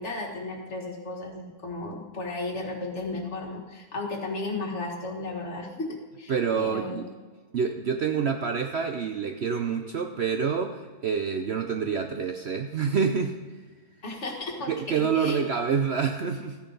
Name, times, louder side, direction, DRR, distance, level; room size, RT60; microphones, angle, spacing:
voice 1, 0.0-7.1 14.0-14.7 15.1-15.4, left 2 dB, 50° left, 0 dB, 2.0 m, -34 dB
voice 2, 6.3-7.1 7.5-13.4 14.7-16.6, right 6 dB, 55° right, 5 dB, 0.8 m, -27 dB
14.0 x 10.0 x 4.0 m, 1.4 s
omnidirectional pair, 1.6 m